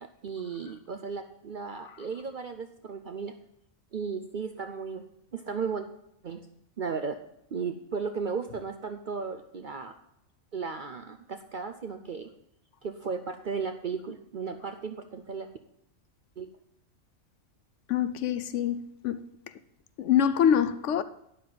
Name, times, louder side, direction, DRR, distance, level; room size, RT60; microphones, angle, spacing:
voice 1, 0.0-3.4 3.9-5.9 6.2-6.5 6.8-7.2 7.5-10.0 10.5-12.3 12.8-15.5 16.4-16.5, right 5 dB, 50° right, 0.6 m, -35 dB
voice 2, 17.9-19.2 20.0-21.0, left 9 dB, 70° left, 0.9 m, -25 dB
12.0 x 9.5 x 3.9 m
omnidirectional pair, 1.4 m